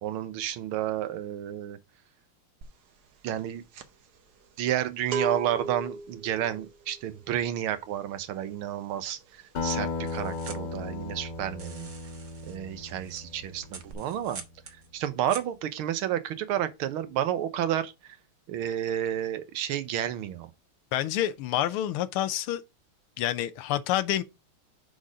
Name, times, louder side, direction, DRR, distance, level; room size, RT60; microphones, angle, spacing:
voice 1, 0.0-1.8 3.2-3.6 4.6-9.2 9.6-11.9 12.5-14.4 14.9-17.9 18.5-20.5, right 11 dB, 80° right, 1.6 m, -31 dB
sound 1, 2.6-2.9 3.1-11.7 12.0-12.2 12.5-13.3 13.6-13.9, right 4 dB, 60° right, 1.1 m, -38 dB
sound 2, 8.8-16.1, right 5 dB, 40° right, 1.5 m, -49 dB
Acoustic guitar, 9.6-14.4, left 3 dB, 60° left, 2.0 m, -36 dB
voice 2, 20.9-22.6 23.2-24.2, left 12 dB, 85° left, 1.6 m, -28 dB
6.2 x 4.1 x 5.0 m
omnidirectional pair, 2.4 m